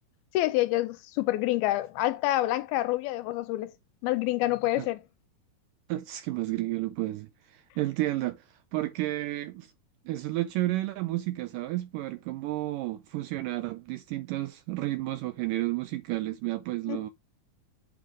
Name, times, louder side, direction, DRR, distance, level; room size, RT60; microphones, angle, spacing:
voice 1, 0.3-3.7 4.0-5.0 16.9-17.0, left 16 dB, 90° left, 2.5 m, -27 dB
voice 2, 5.9-9.7 10.1-17.1, right 17 dB, 85° right, 1.9 m, -32 dB
8.4 x 3.9 x 4.7 m
omnidirectional pair, 4.3 m